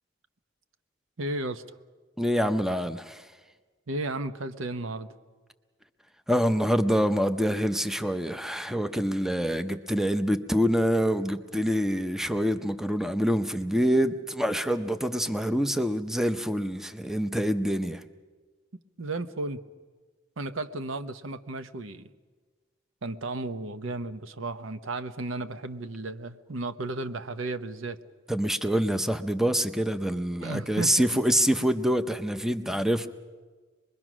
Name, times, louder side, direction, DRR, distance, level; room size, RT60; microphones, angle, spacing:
voice 1, 1.2-1.6 3.9-5.1 19.0-19.6 20.4-22.1 23.0-28.0 30.4-31.1, right 2 dB, 70° right, 11 dB, 0.9 m, -34 dB
voice 2, 2.2-3.3 6.3-18.0 28.3-33.1, equal, ahead, 10 dB, 0.6 m, -26 dB
25.0 x 21.5 x 6.2 m, 1.4 s
head